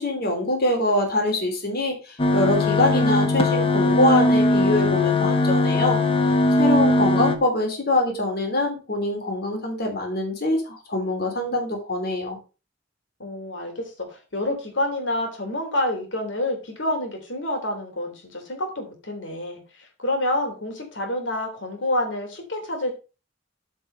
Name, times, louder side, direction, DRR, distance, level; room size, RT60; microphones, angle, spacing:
voice 1, 0.0-6.0 6.6-12.4, left 1 dB, 55° left, 2 dB, 3.2 m, -24 dB
sound 1, 2.2-7.4, left 2 dB, 30° left, 1.2 m, -20 dB
voice 2, 13.2-22.9, left 1 dB, 70° left, 3 dB, 3.1 m, -28 dB
8.8 x 5.3 x 5.4 m, 0.32 s
head